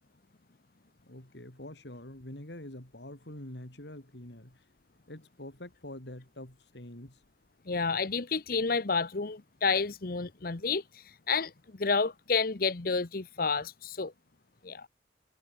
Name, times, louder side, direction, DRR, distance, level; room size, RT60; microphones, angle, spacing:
voice 1, 1.0-4.6 5.1-7.2, left 1 dB, 80° left, 3.8 m, -45 dB
voice 2, 7.7-11.5 11.8-14.1 14.6-14.9, left 4 dB, 55° left, 1.0 m, -30 dB
head